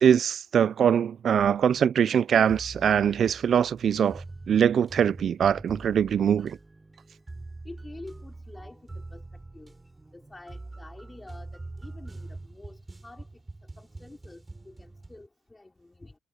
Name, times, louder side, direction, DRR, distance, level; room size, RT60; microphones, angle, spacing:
voice 1, 0.0-4.2 4.5-6.6, right 8 dB, 55° right, 0.4 m, -22 dB
sound 1, 2.5-15.3, right 2 dB, 20° right, 7.2 m, -44 dB
voice 2, 7.7-9.2 9.5-9.7 10.1-13.3 13.8-16.2, left 2 dB, 15° left, 5.2 m, -48 dB
cardioid pair, 90°, 0 cm